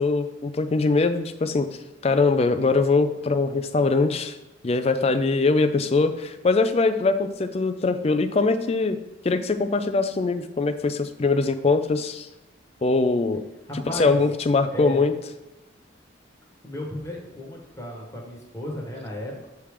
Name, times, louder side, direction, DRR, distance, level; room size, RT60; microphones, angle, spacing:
voice 1, 0.0-1.7 2.0-4.3 4.6-9.0 9.2-12.3 12.8-13.4 14.0-15.1, left 3 dB, 30° left, 10 dB, 0.4 m, -22 dB
voice 2, 13.7-14.2 14.7-15.1 16.6-19.5, left 1 dB, 15° left, -3 dB, 1.2 m, -34 dB
7.2 x 3.5 x 4.8 m, 1.0 s
head